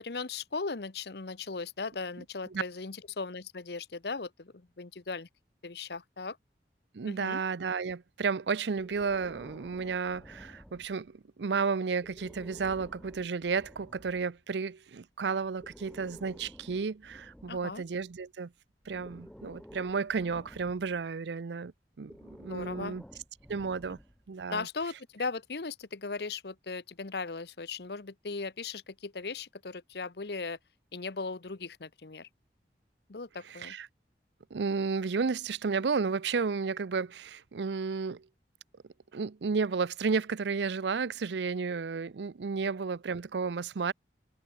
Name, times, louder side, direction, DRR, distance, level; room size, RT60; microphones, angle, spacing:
voice 1, 0.0-5.3 5.6-6.4 7.1-7.4 17.5-17.8 22.5-23.0 24.5-30.6 30.9-32.3 33.1-33.7, left 4 dB, 70° left, 0.9 m, -38 dB
voice 2, 6.9-18.5 18.9-21.7 22.0-23.0 23.5-24.0 24.3-24.7 33.5-33.9 34.5-38.3 39.1-43.9, right 5 dB, 80° right, 0.5 m, -32 dB
Breathing, 8.8-11.2 11.9-14.3 15.4-18.2 18.8-21.1 22.0-24.3, equal, 5° left, 1.1 m, -52 dB
open air
head